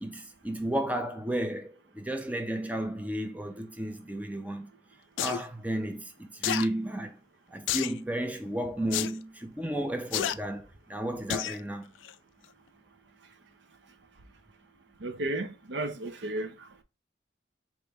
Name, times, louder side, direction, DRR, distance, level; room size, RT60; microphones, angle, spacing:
voice 1, 0.0-4.7 5.2-7.2 7.5-11.9, right 1 dB, 10° right, 0.5 m, -33 dB
sound 1, 5.2-5.4 6.4-6.7 7.7-8.0 8.9-9.1 10.1-10.4 11.3-11.6 12.0-12.1, left 11 dB, 85° left, 0.3 m, -30 dB
voice 2, 15.0-16.5, right 1 dB, 70° right, 0.6 m, -33 dB
4.3 x 3.0 x 3.3 m
head